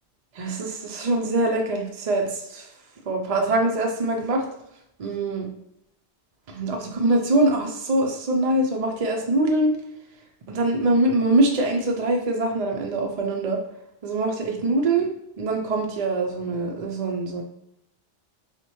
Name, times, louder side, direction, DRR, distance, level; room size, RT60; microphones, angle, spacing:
voice 1, 0.3-2.7 3.1-4.4 5.0-5.5 6.5-9.7 10.5-13.6 14.0-15.1 15.4-17.4, right 2 dB, 50° right, 1 dB, 0.4 m, -23 dB
5.7 x 2.2 x 3.0 m, 0.78 s
omnidirectional pair, 1.1 m